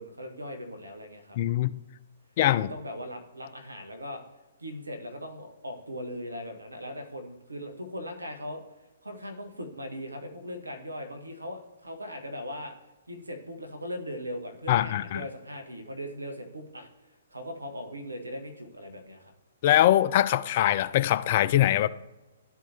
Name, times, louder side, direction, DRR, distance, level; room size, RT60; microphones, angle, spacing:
voice 1, 0.0-1.4 2.5-4.2 4.6-8.6 9.0-12.7 13.1-16.9 17.3-19.3, equal, 85° right, 1.3 m, -39 dB
voice 2, 1.4-1.8 2.4-2.7 14.7-15.2 19.6-21.9, left 13 dB, 45° left, 0.4 m, -22 dB
12.5 x 4.7 x 2.9 m
figure-of-eight pair, 125°, 0 cm